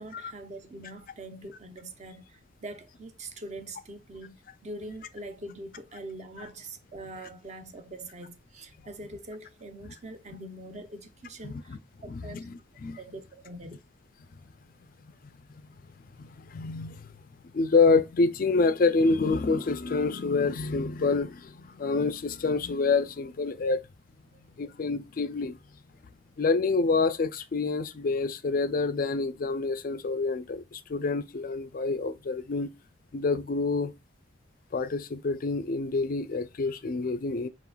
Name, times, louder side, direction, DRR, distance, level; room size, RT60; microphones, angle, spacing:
voice 1, 0.0-12.5 13.0-13.8, right 2 dB, 35° right, 0.6 m, -43 dB
voice 2, 12.1-13.0 16.2-17.1 17.5-23.8 24.6-25.6 26.4-32.7 33.1-33.9 34.7-37.5, left 4 dB, 45° left, 0.4 m, -27 dB
4.9 x 3.8 x 2.2 m
head